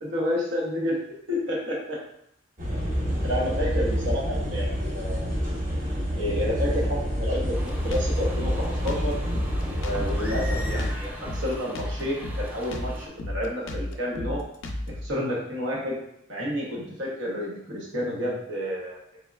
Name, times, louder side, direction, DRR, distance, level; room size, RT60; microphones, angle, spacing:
voice 1, 0.0-1.0 1.3-2.0 3.2-5.4 6.2-9.2 9.7-14.4 15.0-16.0 16.3-19.2, equal, 85° right, -4 dB, 0.9 m, -30 dB
sound 1, 2.6-10.9, equal, 45° right, 0.8 m, -28 dB
Drum kit, 7.4-15.1, left 1 dB, 90° left, 0.5 m, -33 dB
sound 2, 7.5-13.1, equal, 10° right, 0.4 m, -40 dB
3.5 x 3.4 x 2.3 m, 0.75 s
head